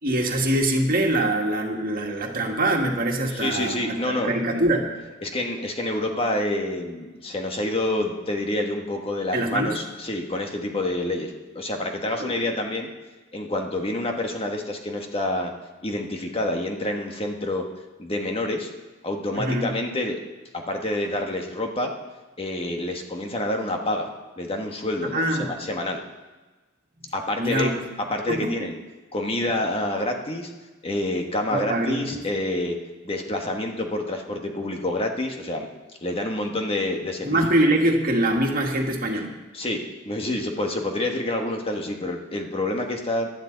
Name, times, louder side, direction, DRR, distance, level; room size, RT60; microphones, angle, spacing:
voice 1, 0.0-4.9 9.3-9.8 12.2-12.3 19.3-19.7 25.1-25.5 27.4-27.8 28.3-28.6 31.5-32.2 37.2-39.3, right 1 dB, 45° right, 1 dB, 2.0 m, -23 dB
voice 2, 3.3-4.3 5.2-12.9 13.3-15.5 15.8-17.6 18.0-18.7 19.0-20.2 20.5-21.9 22.4-24.1 24.4-26.0 27.1-27.7 28.1-28.8 29.1-30.5 30.8-32.7 33.0-35.7 36.0-37.4 39.5-43.3, left 1 dB, 30° left, 3 dB, 1.5 m, -27 dB
17.5 x 12.0 x 4.0 m, 1.2 s
head